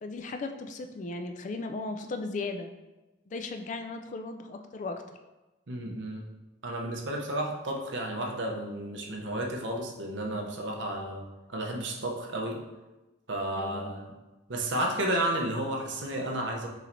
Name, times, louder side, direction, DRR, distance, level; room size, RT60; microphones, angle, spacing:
voice 1, 0.0-2.7 3.3-5.0 13.5-13.9, left 3 dB, 40° left, 6 dB, 0.3 m, -36 dB
voice 2, 5.7-6.3 6.6-12.6 13.3-14.1 14.5-16.7, right 1 dB, 65° right, 1 dB, 0.7 m, -32 dB
5.5 x 3.2 x 2.6 m, 1.1 s
head